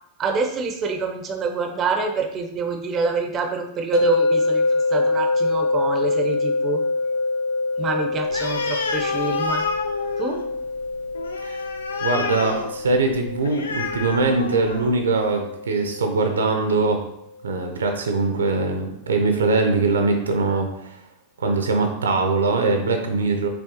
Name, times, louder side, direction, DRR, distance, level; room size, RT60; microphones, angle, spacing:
voice 1, 0.2-4.7 4.9-6.8 7.8-9.6 10.2-10.4, right 4 dB, 30° right, 5 dB, 0.6 m, -26 dB
sound 1, 3.9-17.0, left 3 dB, 45° left, 1.1 m, -25 dB
Animal, 8.3-15.0, left 4 dB, 70° left, 0.5 m, -30 dB
voice 2, 12.0-17.0 17.4-21.0 21.4-23.5, right 3 dB, 70° right, 5 dB, 0.6 m, -22 dB
5.5 x 3.4 x 2.7 m, 0.77 s
figure-of-eight pair, 90°, 0 cm